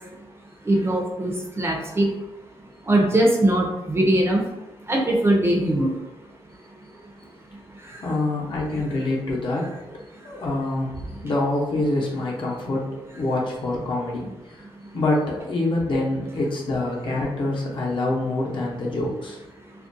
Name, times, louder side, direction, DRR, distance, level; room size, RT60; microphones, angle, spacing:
voice 1, 0.7-2.1 2.9-4.4 4.9-5.9, right 1 dB, 25° right, 0 dB, 0.5 m, -20 dB
voice 2, 8.0-9.7 10.2-14.3 14.5-14.6 14.9-19.4, left 2 dB, 55° left, -4 dB, 0.7 m, -25 dB
2.4 x 2.1 x 2.6 m, 1.0 s
cardioid pair, 100°, 10 cm